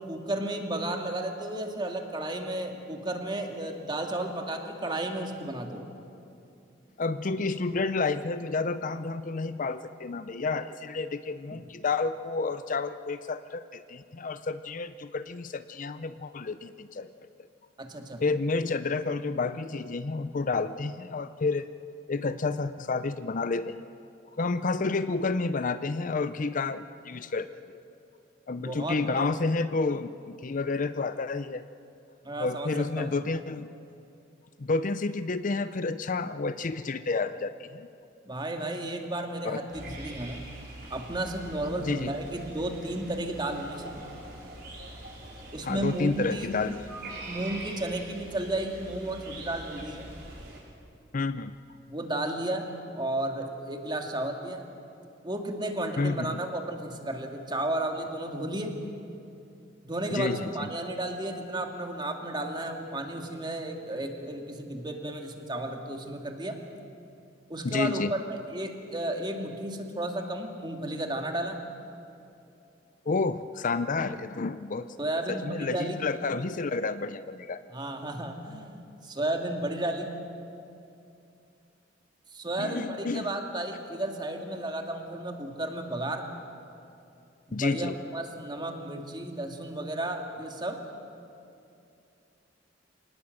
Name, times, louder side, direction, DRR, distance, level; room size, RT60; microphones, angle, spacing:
voice 1, 0.0-5.8 11.5-11.6 17.8-18.2 28.6-29.3 32.2-33.1 38.2-40.4 40.9-44.0 45.5-46.5 47.3-50.1 51.9-52.7 53.0-54.6 55.2-58.7 59.8-66.6 67.5-71.6 75.0-76.0 77.7-80.1 82.3-86.2 87.5-90.8, right 1 dB, 25° right, 3 dB, 2.1 m, -33 dB
voice 2, 7.0-17.1 18.2-21.7 22.1-23.9 24.3-27.8 28.5-31.6 32.4-33.7 34.6-37.9 39.4-39.6 41.8-42.1 45.6-46.8 51.1-51.5 56.0-56.4 60.1-60.7 67.6-68.1 73.1-74.9 75.3-77.6 82.6-83.3 87.5-88.0, left 3 dB, 45° left, 12 dB, 0.6 m, -30 dB
sound 1, 39.7-50.6, right 1 dB, 55° right, 5.6 m, -44 dB
26.0 x 19.0 x 7.8 m, 2.6 s
head